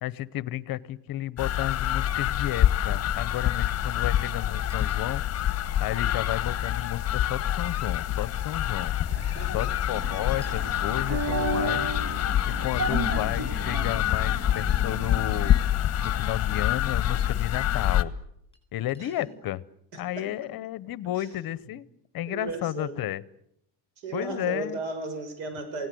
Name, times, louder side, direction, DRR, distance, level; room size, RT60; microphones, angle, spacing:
voice 1, 0.0-5.2 5.8-8.9 9.5-11.9 12.5-15.6 16.0-18.1 18.7-19.6 20.0-21.9 22.1-23.2 24.1-24.8, left 14 dB, 50° left, 19 dB, 0.9 m, -32 dB
Chink clink, 0.7-0.8 1.7-2.1 3.3-3.4 4.7-5.2 6.7-6.8 7.8-8.1 8.8-9.0 10.4-10.6 11.8-11.9 12.8-13.6 14.2-14.3 15.3-15.4 17.1-17.2 18.5-18.6 18.9-19.4, left 2 dB, 10° left, 7.4 m, -58 dB
sound 1, 1.4-18.0, left 11 dB, 35° left, 1.3 m, -26 dB
voice 2, 9.1-9.7 19.0-19.1 19.9-20.3 21.2-21.3 22.2-22.9 24.0-25.9, right 3 dB, 85° right, 8 dB, 6.7 m, -35 dB
sound 2, 9.9-15.6, right 2 dB, 55° right, 2.6 m, -34 dB
27.5 x 18.0 x 7.8 m, 0.74 s
cardioid pair, 135°, 46 cm